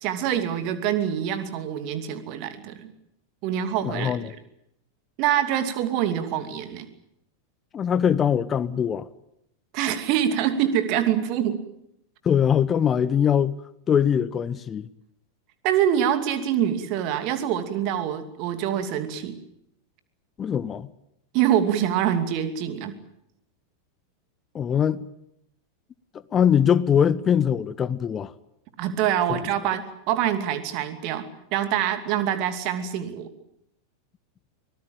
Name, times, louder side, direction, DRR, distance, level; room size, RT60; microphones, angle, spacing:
voice 1, 0.0-2.9 3.4-4.4 5.2-6.9 9.7-11.6 15.6-19.4 21.3-22.9 28.8-33.3, right 10 dB, 40° right, 2.7 m, -25 dB
voice 2, 3.8-4.3 7.7-9.1 12.2-13.6 13.9-14.9 20.4-20.9 24.5-25.0 26.3-28.3 29.3-29.4, left 8 dB, 25° left, 0.9 m, -22 dB
24.5 x 19.0 x 8.9 m
figure-of-eight pair, 90°, 0 cm